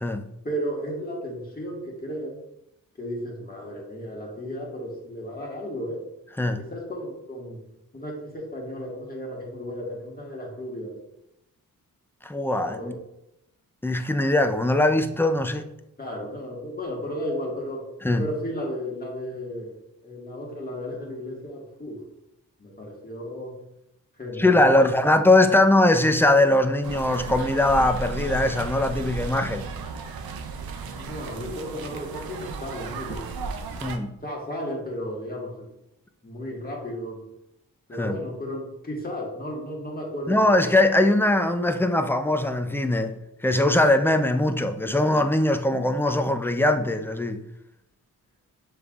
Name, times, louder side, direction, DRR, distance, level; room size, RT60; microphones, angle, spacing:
voice 1, 0.4-2.4 3.0-6.0 6.6-7.6 7.9-10.9 12.5-13.0 16.0-17.9 18.1-19.8 20.0-22.0 22.6-23.6 24.2-25.0 30.8-33.3 34.2-35.6 36.2-37.2 37.9-40.4, equal, 25° left, 1.6 m, -34 dB
voice 2, 12.2-13.0 13.8-15.6 18.0-18.3 24.4-29.6 33.8-34.1 37.9-38.2 40.3-43.2 43.4-47.4, left 1 dB, 5° left, 0.3 m, -21 dB
sound 1, 26.8-34.0, right 4 dB, 85° right, 0.6 m, -34 dB
6.9 x 3.3 x 2.4 m
cardioid pair, 75°, 35 cm